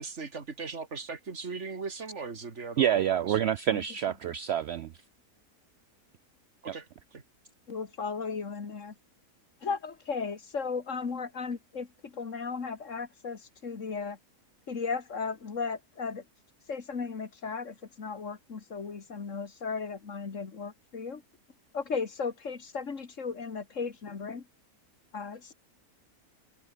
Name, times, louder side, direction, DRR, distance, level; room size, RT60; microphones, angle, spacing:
voice 1, 0.0-3.5 6.6-6.9 7.1-7.2, right 4 dB, 45° right, 2.5 m, -39 dB
voice 2, 2.8-4.9, right 10 dB, 80° right, 0.6 m, -27 dB
voice 3, 7.7-8.9 9.6-14.2 14.7-16.2 16.7-21.2 21.7-24.4 25.1-25.5, left 5 dB, 50° left, 2.2 m, -35 dB
omnidirectional pair, 1.6 m